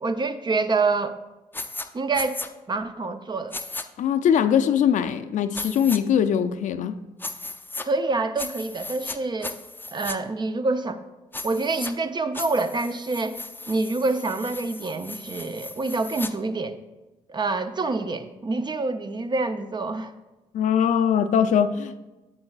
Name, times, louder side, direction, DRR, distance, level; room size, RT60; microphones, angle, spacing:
voice 1, 0.0-1.2 1.9-2.4 2.7-3.5 7.9-9.5 9.9-11.0 11.4-13.4 13.7-16.8 17.3-20.1, right 3 dB, 35° right, 0.6 m, -26 dB
sound 1, 1.5-1.9 2.1-2.5 3.5-3.8 5.5-6.0 7.2-7.9 8.4-9.2 9.4-10.2 11.3-11.9 12.3-16.3, left 3 dB, 15° left, 0.5 m, -36 dB
voice 2, 4.0-7.0 20.5-22.0, left 8 dB, 70° left, 0.4 m, -21 dB
8.7 x 7.6 x 2.4 m
supercardioid pair, 60°, 13 cm